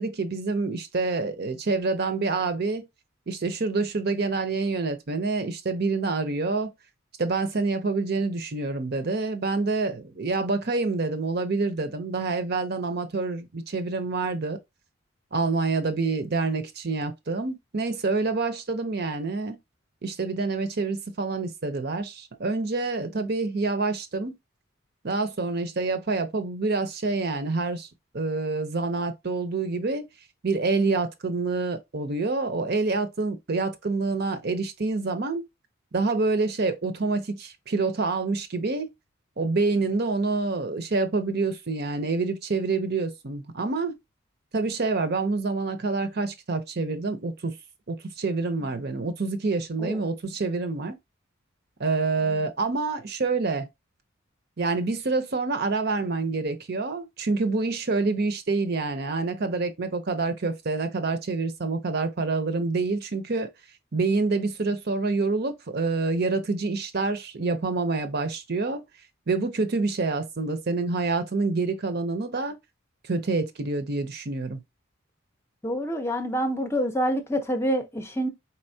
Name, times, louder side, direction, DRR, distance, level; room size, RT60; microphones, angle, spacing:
voice 1, 0.0-2.9 3.3-6.7 7.2-14.6 15.3-19.6 20.0-24.4 25.0-27.9 28.1-30.1 30.4-35.4 35.9-38.9 39.4-43.9 44.5-47.6 47.9-51.0 51.8-53.7 54.6-63.5 63.9-68.8 69.3-72.6 73.1-74.6, right 3 dB, 50° right, 0.7 m, -27 dB
voice 2, 49.8-50.1 52.2-52.5 75.6-78.3, equal, 10° left, 0.6 m, -27 dB
4.4 x 4.0 x 2.7 m
head